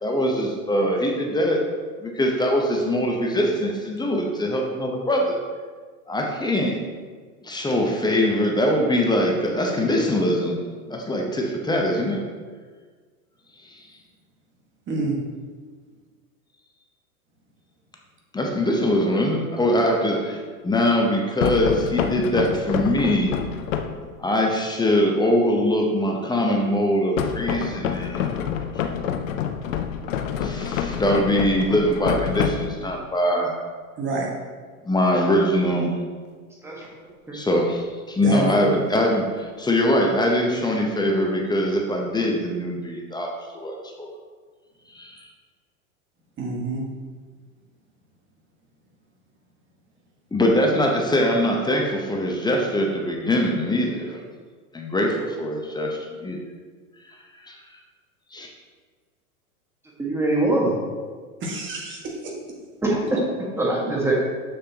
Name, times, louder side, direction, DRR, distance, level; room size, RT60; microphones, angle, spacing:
voice 1, 0.0-1.6 2.0-5.4 6.1-6.8 7.4-10.6 10.9-12.2 13.6-13.8 18.3-23.4 24.2-28.3 30.4-33.5 34.8-35.9 37.3-44.1 44.9-45.2 50.3-54.2 54.7-56.4 57.1-57.2 57.4-57.6 58.3-58.5, left 1 dB, 10° left, 0 dB, 0.8 m, -22 dB
voice 2, 14.9-15.2 34.0-34.3 38.2-38.8 46.4-46.8 61.4-62.3, right 3 dB, 25° right, -2 dB, 1.7 m, -27 dB
sound 1, 21.4-24.1 27.2-33.0, left 8 dB, 60° left, 0.7 m, -27 dB
voice 3, 60.0-60.8 62.8-63.2 63.6-64.1, right 2 dB, 5° right, -4 dB, 1.6 m, -22 dB
7.0 x 6.6 x 2.9 m, 1.5 s
hypercardioid pair, 95°, 45 cm